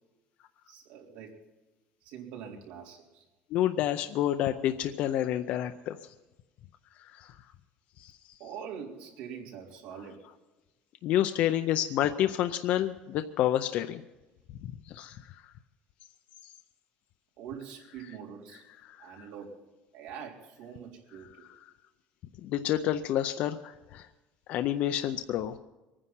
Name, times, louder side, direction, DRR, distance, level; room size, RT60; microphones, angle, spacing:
voice 1, 0.7-1.4 2.0-3.2 8.4-10.2 17.4-18.6 19.0-19.6 19.9-21.4, right 7 dB, 85° right, -2 dB, 3.7 m, -44 dB
voice 2, 3.5-6.0 7.1-7.3 8.0-8.1 11.0-14.0 14.6-15.2 18.8-19.3 22.4-24.1 24.5-25.6, left 12 dB, 45° left, 8 dB, 0.5 m, -29 dB
23.0 x 9.8 x 5.7 m, 1.1 s
cardioid pair, 175°, 3 cm